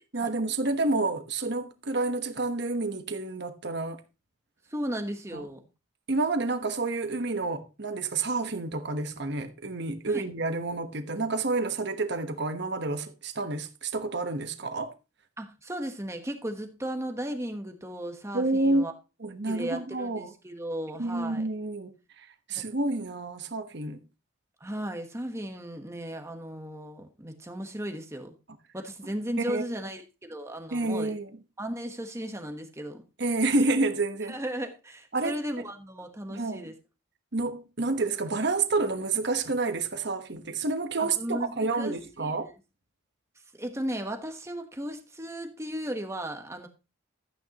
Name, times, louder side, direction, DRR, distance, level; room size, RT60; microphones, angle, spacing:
voice 1, 0.0-4.0 5.3-5.4 6.1-14.9 18.3-18.8 19.2-20.3 21.0-24.0 29.5-29.6 30.7-31.3 33.2-34.4 35.1-35.4 36.3-36.7 37.3-42.5, right 3 dB, 55° right, 1.2 m, -29 dB
voice 2, 4.7-5.6 10.1-10.2 15.4-18.9 19.4-21.5 22.5-22.6 24.6-28.3 28.7-31.1 31.6-33.0 34.2-36.8 41.0-42.5 43.6-46.7, equal, 15° right, 1.2 m, -36 dB
13.0 x 9.1 x 3.0 m
head